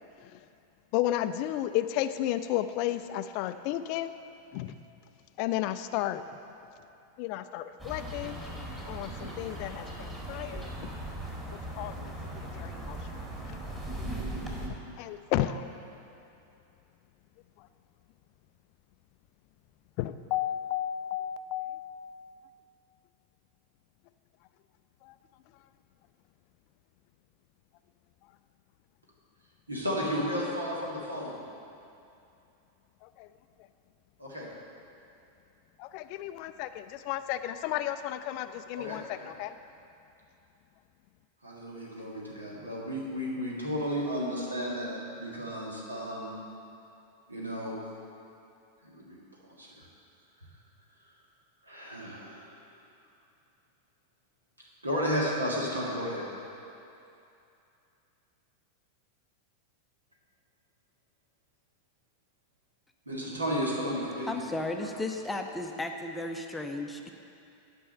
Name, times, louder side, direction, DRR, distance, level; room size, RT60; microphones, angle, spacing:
voice 1, 0.9-4.1 4.5-4.7 5.4-6.2 7.2-8.4 8.9-10.7 11.8-12.1 12.5-13.0 15.0-15.7 20.0-22.2 25.0-25.1 33.0-33.3 35.8-39.5, left 13 dB, 45° left, 11 dB, 0.3 m, -33 dB
sound 1, 7.8-14.7, right 1 dB, 10° right, 1.9 m, -38 dB
voice 2, 29.7-31.4 34.2-34.5 38.8-39.3 41.4-46.3 47.3-47.8 48.9-49.2 49.6-49.7 51.6-52.5 54.8-56.2 63.1-64.4 64.8-64.9, equal, 80° right, -4 dB, 1.9 m, -33 dB
voice 3, 64.3-67.1, left 2 dB, 10° left, 4 dB, 0.6 m, -34 dB
9.9 x 5.5 x 6.5 m, 2.7 s
figure-of-eight pair, 90°, 0 cm